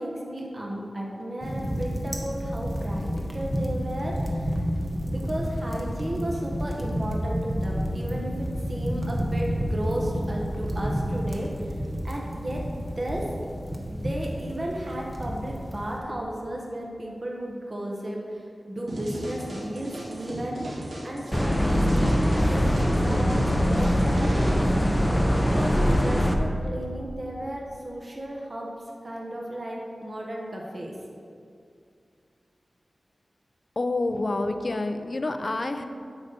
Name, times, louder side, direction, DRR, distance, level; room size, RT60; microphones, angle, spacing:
voice 1, 0.0-3.0 3.3-4.7 5.1-11.8 12.0-12.6 13.0-13.3 13.9-24.6 25.3-28.7 29.0-30.9, right 1 dB, 40° right, -2 dB, 1.3 m, -34 dB
sound 1, 1.4-16.0, equal, 15° right, 1.0 m, -30 dB
sound 2, 18.9-24.5, right 1 dB, 85° right, 2.1 m, -36 dB
sound 3, 21.3-26.3, equal, 5° left, 0.7 m, -22 dB
voice 2, 33.8-35.8, left 2 dB, 45° left, 8 dB, 0.5 m, -28 dB
9.4 x 4.1 x 6.7 m, 2.3 s
wide cardioid pair, 100°, 0 cm